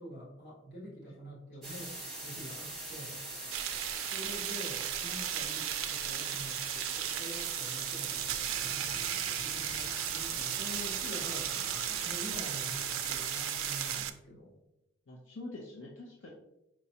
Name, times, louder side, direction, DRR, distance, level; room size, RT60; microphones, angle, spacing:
voice 1, 0.0-3.2 3.6-8.1 8.6-14.5, equal, 50° left, -6 dB, 1.4 m, -46 dB
sound 1, 1.6-14.0, right 2 dB, ahead, 1.0 m, -42 dB
sound 2, 3.5-14.1, right 12 dB, 75° right, 0.3 m, -36 dB
sound 3, 8.0-13.3, equal, 25° left, 0.5 m, -54 dB
voice 2, 15.1-16.3, left 2 dB, 70° left, -2 dB, 0.6 m, -46 dB
4.6 x 3.1 x 2.8 m, 0.89 s
head